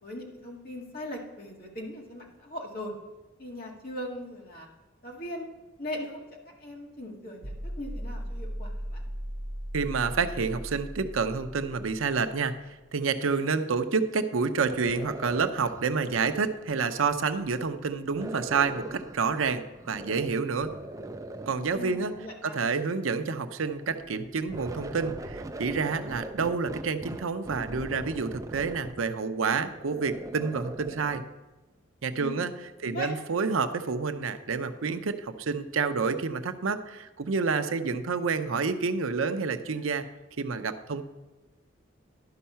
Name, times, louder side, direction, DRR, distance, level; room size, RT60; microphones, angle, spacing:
voice 1, 0.0-2.9 3.4-4.7 5.0-5.5 5.8-6.2 6.6-9.0 21.7-22.5 32.2-32.5 32.8-33.1, left 1 dB, 45° left, -1 dB, 1.9 m, -39 dB
sound 1, 7.4-12.5, equal, 40° right, 0.8 m, -38 dB
voice 2, 9.7-20.7 21.5-22.1 22.4-31.2 32.0-32.5 32.8-40.1 40.4-41.0, right 5 dB, 85° right, 9 dB, 0.6 m, -29 dB
sound 2, 14.7-17.5 18.2-20.3 20.6-22.4 23.4-31.2, right 2 dB, 15° right, 0.4 m, -41 dB
11.5 x 5.5 x 5.6 m, 1.1 s
head